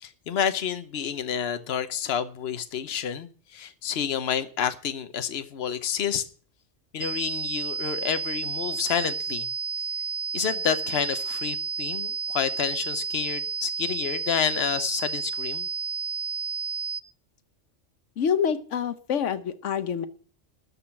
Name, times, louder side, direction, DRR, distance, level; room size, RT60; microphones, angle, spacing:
voice 1, 0.0-6.2 6.9-9.5 10.3-15.7, left 8 dB, 60° left, 1.1 m, -29 dB
sound 1, 7.0-17.0, right 5 dB, 40° right, 0.6 m, -31 dB
voice 2, 18.2-20.1, left 7 dB, 85° left, 1.2 m, -26 dB
13.0 x 5.5 x 8.6 m
omnidirectional pair, 1.2 m